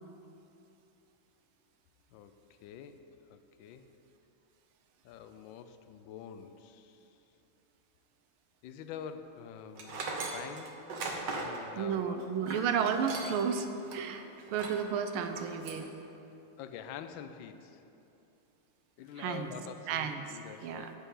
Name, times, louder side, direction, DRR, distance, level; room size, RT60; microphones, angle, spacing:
voice 1, 2.6-3.0 3.3-3.9 5.0-7.0 8.6-10.8 11.3-12.6 16.6-17.8 19.0-20.9, left 8 dB, 75° left, 9 dB, 1.3 m, -46 dB
Tools, 9.8-13.5 13.9-14.0 14.5-14.8 15.2-15.9, right 3 dB, 60° right, 1.6 m, -39 dB
voice 2, 11.8-14.2 14.5-15.9 19.2-19.5 19.9-20.9, right 7 dB, 85° right, 7 dB, 1.6 m, -32 dB
13.5 x 9.8 x 3.8 m, 2.8 s
omnidirectional pair, 2.3 m